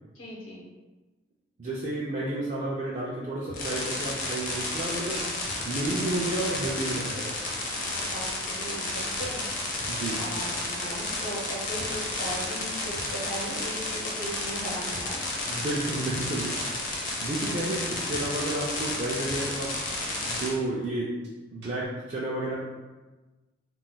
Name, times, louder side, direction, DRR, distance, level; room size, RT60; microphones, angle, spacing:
voice 1, 0.1-0.7 8.1-9.5 10.2-15.4, equal, 85° left, -4 dB, 1.0 m, -38 dB
voice 2, 1.6-5.3 5.6-7.4 9.9-10.2 15.5-16.6 17.2-19.7 20.2-21.1 21.5-22.5, right 2 dB, 40° right, -6 dB, 0.4 m, -31 dB
sound 1, 3.5-20.5, left 2 dB, 45° left, 0.6 m, -32 dB
sound 2, 3.5-3.6 3.9-4.0 4.3-4.4 4.7-4.8 5.0-5.1 5.4-5.9 6.2-6.3 6.6-6.8 7.0-7.1 7.4-7.5 7.8-7.9 8.2-8.3 8.6-8.7 9.0-9.9 10.2-10.3 10.6-10.7 11.0-11.1 11.4-11.5 11.8-12.2 12.6-12.7 12.9-13.1 13.3-13.4 13.7-13.8 14.1-14.2 14.5-14.6 14.9-15.1 15.3-16.2 16.5-16.6 16.9-17.0 17.3-17.4 17.7-17.8 18.1-18.5 18.9-19.0 19.3-19.4 19.7-19.8 20.0-20.1 20.5-20.6 20.8-20.9 21.2-21.3 21.6-21.8, right 1 dB, 60° right, 0.7 m, -46 dB
2.4 x 2.1 x 3.9 m, 1.2 s
head